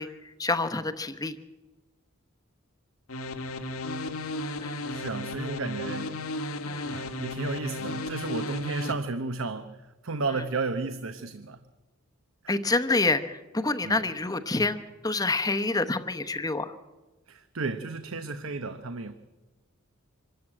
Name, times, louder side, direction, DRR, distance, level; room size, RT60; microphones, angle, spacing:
voice 1, 0.0-1.4 4.6-4.8 6.7-6.9 12.5-16.7, left 3 dB, 15° left, 10 dB, 0.9 m, -28 dB
sound 1, 3.1-8.9, left 2 dB, 85° left, 1.7 m, -34 dB
voice 2, 4.9-6.1 6.9-11.6 12.4-12.6 13.8-14.0 17.3-19.1, right 3 dB, 70° right, 10 dB, 0.9 m, -33 dB
25.0 x 13.0 x 8.9 m, 1.2 s
head